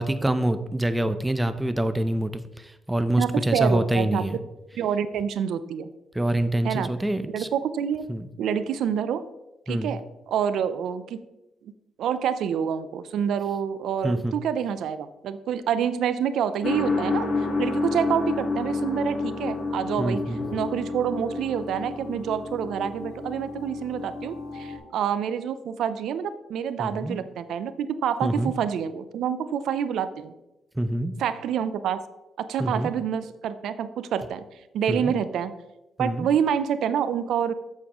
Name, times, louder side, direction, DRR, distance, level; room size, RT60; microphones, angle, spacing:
voice 1, 0.0-4.4 6.1-7.5 8.1-8.3 9.7-10.0 14.0-14.3 20.0-20.4 26.8-27.2 28.2-28.5 30.7-31.1 32.6-32.9 34.9-35.1 36.0-36.3, right 1 dB, 10° right, 10 dB, 0.6 m, -26 dB
voice 2, 3.2-4.2 4.8-5.9 6.6-6.9 7.3-8.1 8.4-9.3 9.7-11.2 12.0-20.2 20.5-30.3 31.2-32.1 32.4-34.4 34.7-35.5 36.0-37.5, right 8 dB, 75° right, 13 dB, 0.5 m, -27 dB
sound 1, 16.6-24.8, left 3 dB, 60° left, 2.1 m, -30 dB
8.2 x 7.4 x 3.0 m, 0.97 s
cardioid pair, 90°, 0 cm